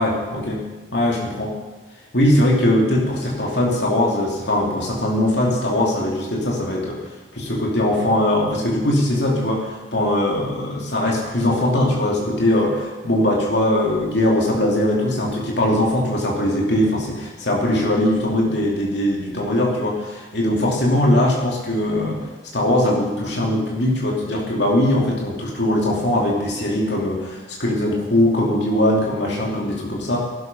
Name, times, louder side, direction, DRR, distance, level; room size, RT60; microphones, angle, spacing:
voice 1, 0.0-1.6 2.1-22.3 22.5-30.2, left 1 dB, 65° left, -2 dB, 2.9 m, -20 dB
17.5 x 12.5 x 5.5 m, 1.3 s
head